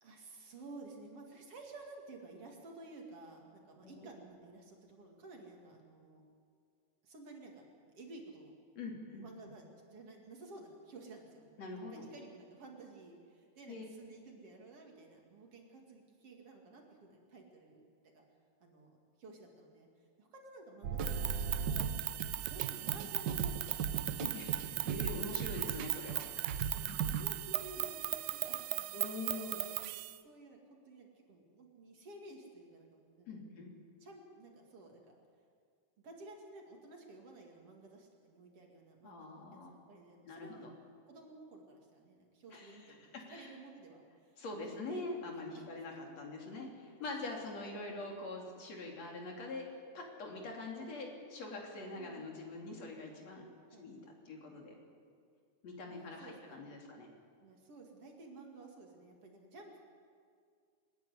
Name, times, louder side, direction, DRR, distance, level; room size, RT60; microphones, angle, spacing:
voice 1, 0.0-6.2 7.0-7.6 7.9-8.6 9.1-11.6 11.9-18.2 18.6-19.9 20.2-24.0 25.0-25.4 26.4-28.0 28.3-29.4 30.0-30.6 30.9-33.5 34.0-35.1 36.0-40.7 41.1-45.1 45.3-45.6 51.9-52.3 53.7-53.9 55.9-56.6 57.4-59.8, right 2 dB, 55° right, 1 dB, 3.2 m, -54 dB
voice 2, 8.8-9.2 11.6-12.0 13.7-13.8 21.6-21.8 24.2-26.5 28.9-29.6 33.3-33.7 39.0-39.7 40.2-40.7 42.5-42.8 43.3-43.5 44.4-49.7 49.9-53.5 53.8-54.0 54.3-54.7 55.6-57.1, left 2 dB, 65° left, 0 dB, 3.9 m, -44 dB
sound 1, 20.8-27.2, right 6 dB, 75° right, 1.0 m, -37 dB
sound 2, 21.0-30.2, right 17 dB, 90° right, 2.1 m, -38 dB
26.0 x 10.5 x 9.8 m, 2.1 s
omnidirectional pair, 3.3 m